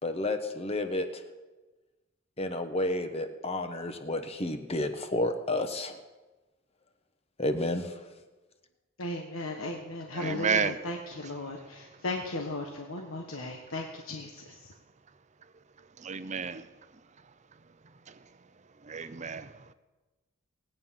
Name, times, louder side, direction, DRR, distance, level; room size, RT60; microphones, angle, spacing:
voice 1, 0.0-1.2 2.4-6.0 7.4-7.9, left 2 dB, 30° left, 8 dB, 1.1 m, -31 dB
voice 2, 9.0-14.3, left 2 dB, 80° left, 2 dB, 1.3 m, -36 dB
voice 3, 10.1-10.8 11.1-11.9 13.3-13.5 16.0-16.7 18.1-18.2 18.8-19.7, right 5 dB, 35° right, 12 dB, 0.6 m, -33 dB
19.0 x 9.2 x 5.7 m, 1.2 s
head